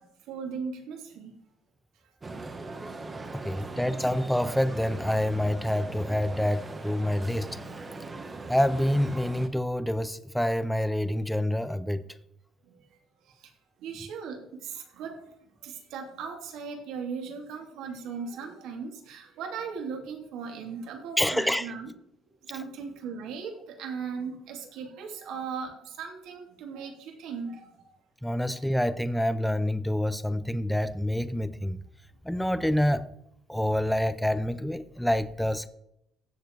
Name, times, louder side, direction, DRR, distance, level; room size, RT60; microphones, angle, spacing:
voice 1, 0.3-1.3 2.6-2.8 3.8-3.9 13.8-15.1 15.6-21.9 22.5-25.7 26.0-27.6, right 5 dB, 70° right, 2.8 m, -38 dB
sound 1, 2.2-9.5, right 3 dB, 20° right, 1.1 m, -40 dB
voice 2, 3.3-7.6 8.5-12.0 21.2-21.7 28.2-31.8 32.2-33.1 33.5-35.7, left 1 dB, ahead, 0.6 m, -27 dB
16.0 x 7.1 x 4.7 m
cardioid pair, 150°, 0 cm